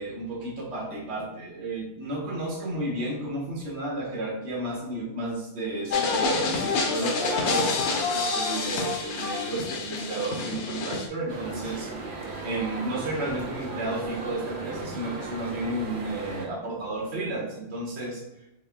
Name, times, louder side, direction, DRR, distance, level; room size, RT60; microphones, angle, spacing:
voice 1, 0.0-12.1 12.4-18.2, right 2 dB, 70° right, -1 dB, 1.2 m, -32 dB
sound 1, 5.9-11.1, left 4 dB, 80° left, 0.9 m, -28 dB
sound 2, 11.3-16.5, right 3 dB, 50° right, 0.8 m, -36 dB
4.2 x 3.7 x 2.3 m, 0.89 s
omnidirectional pair, 1.2 m